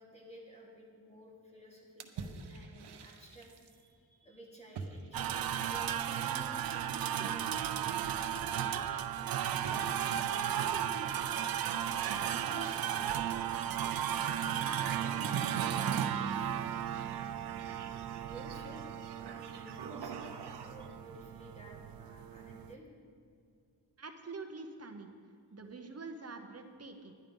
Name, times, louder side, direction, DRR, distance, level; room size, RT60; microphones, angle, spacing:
voice 1, 0.0-9.3 18.3-18.8 19.2-22.9, right 1 dB, 15° left, -3 dB, 2.6 m, -53 dB
sound 1, 2.0-3.8 4.7-6.0 7.0-8.4 9.5-11.2 11.9-13.4 14.0-14.7 15.0-21.0, right 5 dB, 85° right, 0.8 m, -48 dB
sound 2, 5.1-22.7, right 9 dB, 65° right, 0.5 m, -35 dB
voice 2, 10.6-11.3 11.9-16.9 24.0-25.1 25.5-27.2, right 3 dB, 40° right, 5 dB, 0.9 m, -48 dB
11.0 x 10.5 x 5.3 m, 2.4 s
wide cardioid pair, 125°, 39 cm